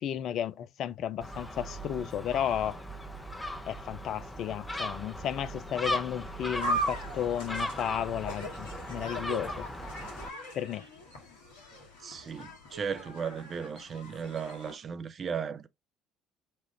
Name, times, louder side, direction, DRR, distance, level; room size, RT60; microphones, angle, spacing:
voice 1, 0.0-2.8 3.7-9.7 10.5-10.8, left 10 dB, 55° left, 0.4 m, -33 dB
Gull seagull, 1.2-10.3, equal, 10° left, 0.8 m, -38 dB
sound 1, 6.6-14.7, right 1 dB, 75° left, 1.3 m, -39 dB
voice 2, 12.0-15.7, right 6 dB, 40° right, 0.6 m, -36 dB
4.4 x 2.5 x 3.3 m
figure-of-eight pair, 55°, 0 cm